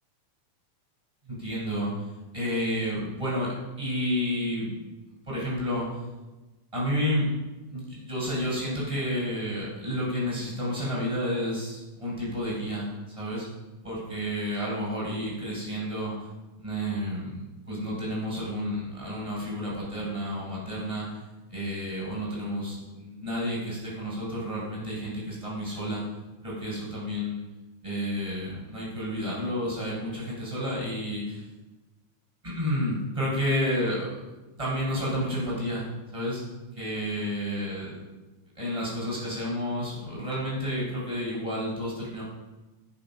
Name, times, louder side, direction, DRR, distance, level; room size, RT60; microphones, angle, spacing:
voice 1, 1.2-1.9 2.3-4.8 5.3-6.0 6.7-7.3 7.7-12.9 13.1-13.5 13.8-16.1 16.6-17.3 17.7-21.2 21.5-26.0 26.4-27.4 27.8-31.4 32.4-34.1 34.6-35.9 36.1-36.4 36.8-37.9 38.6-42.2, equal, 10° right, -5 dB, 5.8 m, -30 dB
18.0 x 9.4 x 5.6 m, 1.2 s
omnidirectional pair, 3.5 m